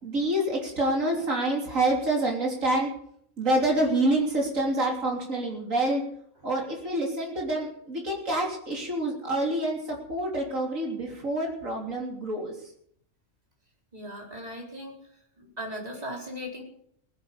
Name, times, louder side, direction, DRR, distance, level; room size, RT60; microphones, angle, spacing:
voice 1, 0.0-2.9 3.4-6.0 6.4-12.5, right 1 dB, 85° right, -1 dB, 3.7 m, -27 dB
voice 2, 13.9-15.0 15.4-16.6, equal, 30° right, -1 dB, 4.2 m, -38 dB
19.5 x 10.5 x 5.1 m, 0.68 s
omnidirectional pair, 1.3 m